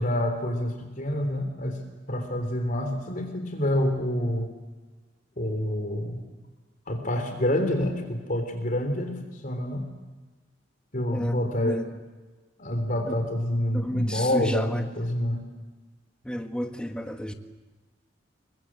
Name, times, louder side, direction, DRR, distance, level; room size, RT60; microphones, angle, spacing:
voice 1, 0.0-1.8 2.1-4.5 5.4-6.2 6.9-9.2 9.4-9.9 10.9-11.8 12.6-15.4, left 1 dB, 45° left, 4 dB, 3.6 m, -27 dB
voice 2, 11.1-11.9 13.1-13.2 13.7-14.9 16.2-17.3, equal, 5° left, 5 dB, 1.7 m, -32 dB
28.5 x 22.5 x 7.6 m, 1.3 s
head